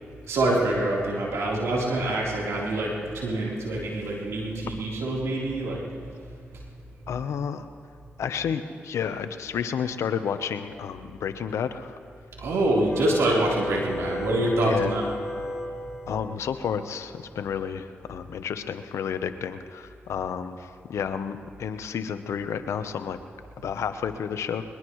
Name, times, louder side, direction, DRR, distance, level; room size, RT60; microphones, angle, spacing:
voice 1, 0.3-5.8 12.4-15.1, right 1 dB, 80° right, -4 dB, 3.8 m, -25 dB
voice 2, 7.1-7.7 8.2-12.0 14.4-14.9 16.1-23.2 23.6-24.6, left 7 dB, 80° left, 10 dB, 0.8 m, -31 dB
sound 1, 12.9-16.2, left 1 dB, 15° left, 4.8 m, -33 dB
21.5 x 21.5 x 3.2 m, 2.3 s
supercardioid pair, 45°, 5 cm